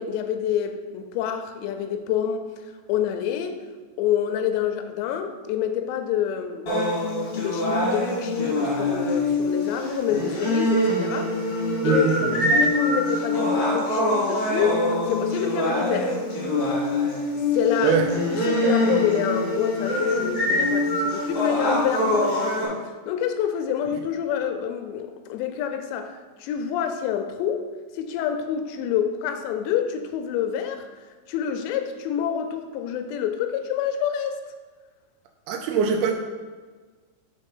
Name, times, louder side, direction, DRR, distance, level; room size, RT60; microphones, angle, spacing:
voice 1, 0.0-2.4 2.9-3.6 4.0-6.7 7.4-11.3 11.8-16.2 17.5-18.0 18.3-27.7 27.9-30.9 31.3-34.4, left 9 dB, 90° left, 7 dB, 2.8 m, -27 dB
sound 1, 6.7-22.6, left 1 dB, 55° left, 3.0 m, -24 dB
voice 2, 11.8-12.5 17.8-18.1 35.5-36.1, right 5 dB, 80° right, 3 dB, 2.4 m, -22 dB
6.4 x 4.0 x 5.4 m, 1.4 s
omnidirectional pair, 4.9 m